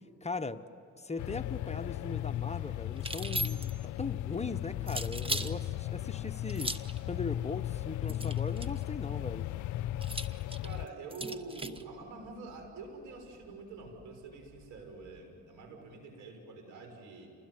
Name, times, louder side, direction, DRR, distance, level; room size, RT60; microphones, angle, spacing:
voice 1, 0.2-0.6 1.0-9.5, left 3 dB, 20° left, 9 dB, 0.9 m, -39 dB
sound 1, 1.2-10.9, left 13 dB, 70° left, 0.5 m, -36 dB
sound 2, 2.9-15.2, equal, 35° right, 7.6 m, -62 dB
sound 3, 3.0-3.9 4.9-5.5 6.5-7.0 8.1-8.8 10.0-11.8, right 1 dB, 20° right, 1.2 m, -37 dB
voice 2, 10.6-17.3, right 3 dB, 80° right, 4 dB, 6.3 m, -46 dB
29.0 x 20.5 x 9.7 m, 2.7 s
cardioid pair, 90°, 30 cm